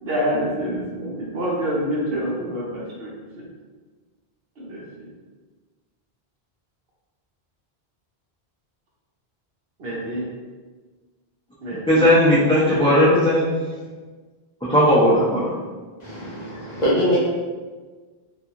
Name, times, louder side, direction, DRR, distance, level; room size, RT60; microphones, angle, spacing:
voice 1, 0.0-3.1 3.4-3.5 4.6-5.1 9.8-10.2 11.6-12.1 12.7-13.1 16.1-16.3, equal, 70° right, -4 dB, 0.9 m, -27 dB
voice 2, 11.9-13.5 14.6-15.6, equal, 10° left, -9 dB, 0.3 m, -17 dB
voice 3, 16.0-17.2, equal, 45° left, -8 dB, 0.8 m, -23 dB
2.4 x 2.3 x 2.8 m, 1.4 s
omnidirectional pair, 1.0 m